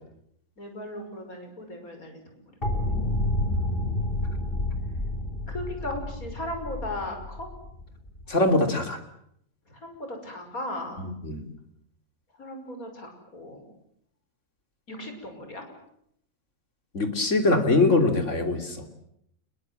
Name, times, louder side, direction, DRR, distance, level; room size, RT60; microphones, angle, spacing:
voice 1, 0.6-2.4 2.7-2.9 3.3-4.2 5.5-7.5 9.7-11.0 12.4-13.6 14.9-15.6, left 1 dB, 85° left, 5 dB, 6.2 m, -37 dB
sound 1, 2.6-8.3, left 1 dB, 40° left, 3.8 m, -29 dB
voice 2, 8.3-9.0 11.0-11.5 16.9-18.8, left 2 dB, 60° left, 6 dB, 3.5 m, -23 dB
28.5 x 22.0 x 7.8 m, 0.74 s
omnidirectional pair, 1.5 m